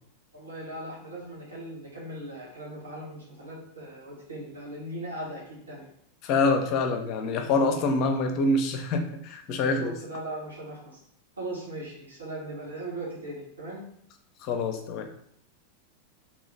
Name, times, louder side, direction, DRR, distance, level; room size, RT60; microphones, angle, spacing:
voice 1, 0.3-5.9 9.6-11.0 11.4-13.8, right 1 dB, 75° right, -6 dB, 1.4 m, -39 dB
voice 2, 6.2-9.9 14.4-15.1, left 3 dB, 40° left, 6 dB, 0.5 m, -26 dB
2.9 x 2.8 x 3.9 m, 0.68 s
figure-of-eight pair, 90°, 0 cm